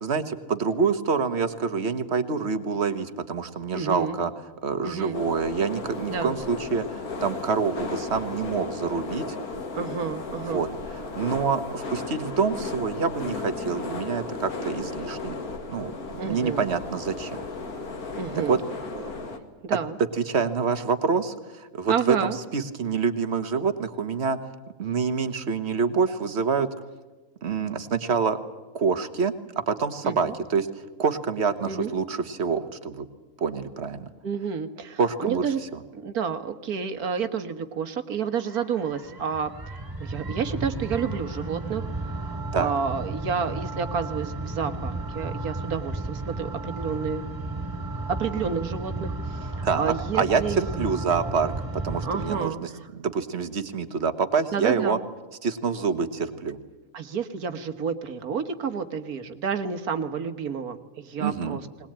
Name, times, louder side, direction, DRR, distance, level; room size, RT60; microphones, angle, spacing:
voice 1, 0.0-4.3 4.6-9.4 10.5-10.7 11.1-15.4 15.7-15.9 16.2-17.4 18.5-18.6 20.1-24.4 24.8-26.7 27.4-28.4 28.7-29.3 29.7-30.7 31.0-33.1 33.4-34.0 35.0-35.4 42.5-42.7 49.6-51.5 51.8-55.0 55.4-56.6 61.2-61.6, right 5 dB, 50° right, 9 dB, 1.6 m, -26 dB
voice 2, 3.7-4.2 4.8-5.2 6.1-6.3 9.7-10.7 16.2-16.7 18.2-18.6 18.9-19.1 19.6-20.0 21.9-22.4 30.0-30.3 31.7-31.9 34.2-35.6 35.9-39.5 40.0-47.2 48.1-50.9 52.0-52.6 54.5-55.0 56.9-61.9, right 6 dB, 85° right, 9 dB, 1.9 m, -30 dB
sound 1, 5.1-19.4, left 3 dB, 80° left, 2.4 m, -35 dB
sound 2, 38.4-52.4, right 2 dB, 15° right, 3.3 m, -33 dB
20.5 x 20.5 x 8.9 m, 1.2 s
omnidirectional pair, 1.5 m